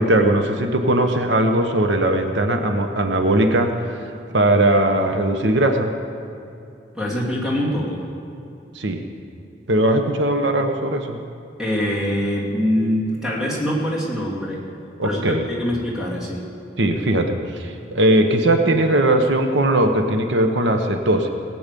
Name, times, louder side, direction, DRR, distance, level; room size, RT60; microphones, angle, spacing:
voice 1, 0.0-3.7 4.0-4.1 4.3-5.9 8.7-9.0 9.7-11.2 15.0-15.4 16.8-21.3, right 1 dB, 85° right, 5 dB, 1.1 m, -19 dB
voice 2, 6.9-8.1 11.6-14.6 15.0-16.5, equal, 5° right, -5 dB, 3.0 m, -24 dB
19.0 x 8.8 x 6.9 m, 2.6 s
head